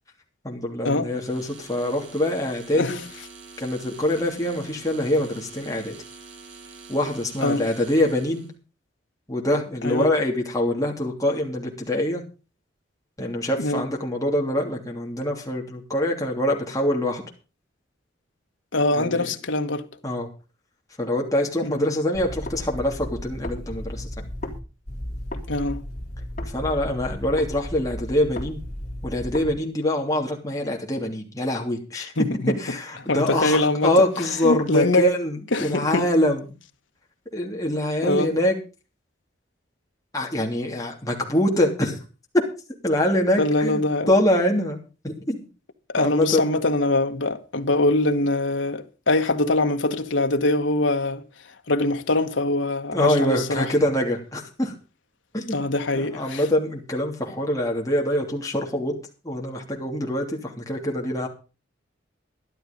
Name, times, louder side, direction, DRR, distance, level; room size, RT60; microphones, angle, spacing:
voice 1, 0.4-3.0 3.6-5.9 6.9-8.5 9.3-12.2 13.2-17.2 18.9-19.3 20.0-20.3 21.0-24.3 26.5-28.6 29.0-32.1 32.6-36.5 37.3-38.6 40.1-42.0 42.3-42.4 42.8-44.8 45.0-45.4 46.0-46.5 52.9-54.8 55.3-55.6 55.9-59.0 59.2-61.3, left 1 dB, 20° left, 3.0 m, -24 dB
sound 1, 1.1-8.5, right 4 dB, 80° right, 2.8 m, -45 dB
voice 2, 18.7-19.8 21.6-21.8 25.5-25.8 32.2-32.6 33.1-33.9 34.4-35.0 35.5-36.0 38.0-38.3 43.4-44.1 45.9-51.2 51.7-53.7 55.5-56.4, left 2 dB, 75° left, 1.4 m, -23 dB
sound 2, 22.1-24.6 24.9-29.5, left 1 dB, 35° left, 3.6 m, -34 dB
12.5 x 11.5 x 5.3 m
head